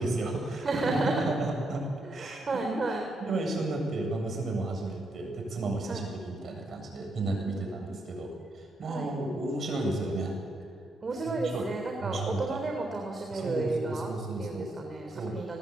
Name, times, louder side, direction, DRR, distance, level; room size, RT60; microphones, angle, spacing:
voice 1, 0.0-2.8 3.2-10.3 11.3-11.7 12.0-12.6 13.3-14.7 15.1-15.4, right 2 dB, 55° right, 3 dB, 7.7 m, -33 dB
voice 2, 0.6-1.2 2.0-3.1 5.9-6.2 7.2-8.0 8.9-9.1 11.0-14.1 14.4-15.6, right 3 dB, 35° right, 2 dB, 3.7 m, -33 dB
29.5 x 20.0 x 8.7 m, 2.4 s
cardioid pair, 90°, 0 cm